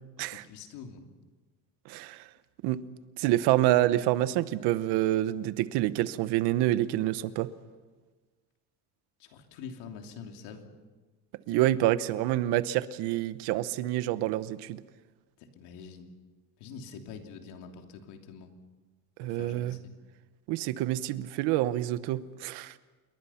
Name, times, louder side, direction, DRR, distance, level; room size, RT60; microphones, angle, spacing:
voice 1, 0.2-1.1 9.2-10.7 15.4-16.1 16.6-18.5 19.2-19.9, left 6 dB, 85° left, 4 dB, 3.2 m, -45 dB
voice 2, 1.9-2.2 2.6-2.8 3.2-7.5 11.5-14.8 19.2-19.8 20.5-22.7, right 14 dB, 80° right, 14 dB, 1.1 m, -27 dB
28.0 x 22.5 x 5.8 m, 1.3 s
cardioid pair, 175°, 39 cm